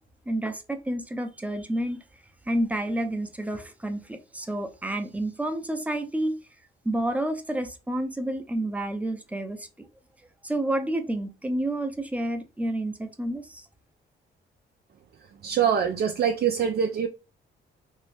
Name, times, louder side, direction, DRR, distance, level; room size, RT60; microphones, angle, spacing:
voice 1, 0.3-2.0 2.5-6.3 6.8-9.9 10.4-13.7, right 1 dB, 5° right, 0.6 m, -29 dB
voice 2, 15.4-17.1, right 8 dB, 50° right, 0.5 m, -24 dB
2.9 x 2.7 x 3.3 m
cardioid pair, 90°, 20 cm